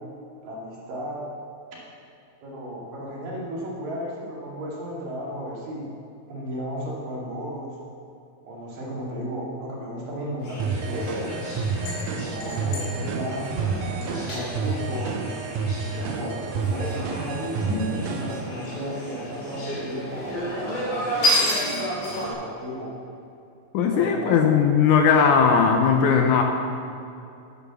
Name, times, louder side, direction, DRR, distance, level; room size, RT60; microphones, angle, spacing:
voice 1, 0.4-1.2 2.4-5.9 6.3-7.8 8.4-11.3 12.1-13.5 14.0-15.3 15.9-21.2 22.2-22.9 23.9-24.5, equal, 70° right, -4 dB, 4.0 m, -34 dB
sound 1, 10.4-22.3, equal, 45° left, 3.2 m, -30 dB
sound 2, 10.6-18.4, right 4 dB, 85° right, 1.6 m, -30 dB
voice 2, 23.7-26.4, left 6 dB, 75° left, 3 dB, 1.9 m, -18 dB
9.3 x 8.6 x 6.9 m, 2.6 s
omnidirectional pair, 4.2 m